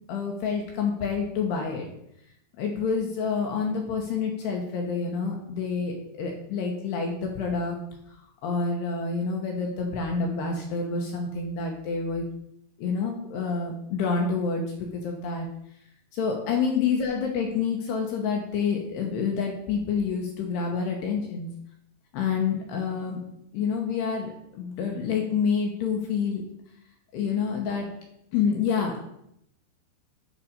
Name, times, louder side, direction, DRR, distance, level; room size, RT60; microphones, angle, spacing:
voice 1, 0.1-1.9 2.6-7.8 8.4-12.2 12.8-14.6 14.9-15.5 16.1-21.5 22.1-23.2 23.5-26.4 27.1-27.9 28.3-29.1, left 5 dB, 70° left, 1 dB, 2.8 m, -28 dB
10.0 x 4.1 x 6.5 m, 0.77 s
omnidirectional pair, 5.6 m